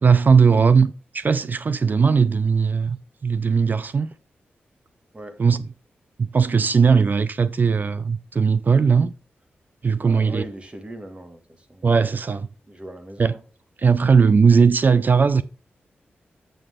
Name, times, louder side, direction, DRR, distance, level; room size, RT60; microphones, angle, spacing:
voice 1, 0.0-4.1 5.4-5.6 6.2-9.1 9.8-10.4 11.8-12.5 13.2-13.3 13.8-15.4, right 5 dB, 50° right, 0.5 m, -18 dB
voice 2, 10.0-11.4 11.7-11.9 12.7-13.4, right 1 dB, 30° right, 2.0 m, -39 dB
7.9 x 7.5 x 3.7 m
cardioid pair, 60°, 4 cm